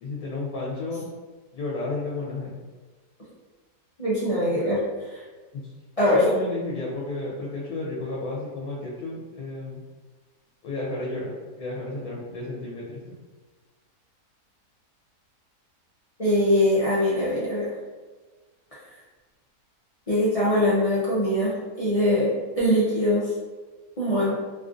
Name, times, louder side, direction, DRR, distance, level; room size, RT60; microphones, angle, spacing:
voice 1, 0.0-1.1 1.5-2.5 6.1-9.8 10.6-13.0, left 2 dB, 75° left, -5 dB, 1.1 m, -32 dB
voice 2, 4.0-4.8 5.1-5.2 6.0-6.2 16.2-17.7 20.1-22.3 22.6-23.2 24.0-24.3, left 1 dB, 45° left, -10 dB, 0.4 m, -22 dB
3.2 x 2.5 x 2.5 m, 1.3 s
omnidirectional pair, 1.6 m